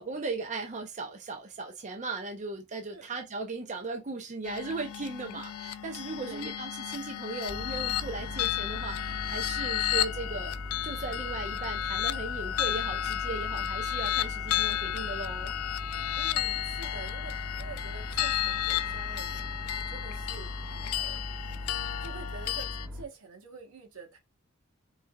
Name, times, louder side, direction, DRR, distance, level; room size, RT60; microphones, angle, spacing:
voice 1, 0.0-10.5 10.8-15.5, right 3 dB, 35° right, 0.7 m, -37 dB
sound 1, 4.4-22.9, left 12 dB, 80° left, 0.3 m, -33 dB
voice 2, 6.2-6.6 16.1-21.2 21.5-21.6 22.0-24.2, right 4 dB, 85° right, 1.3 m, -47 dB
sound 2, 7.5-23.1, left 1 dB, 5° left, 1.2 m, -40 dB
4.6 x 3.3 x 2.3 m
head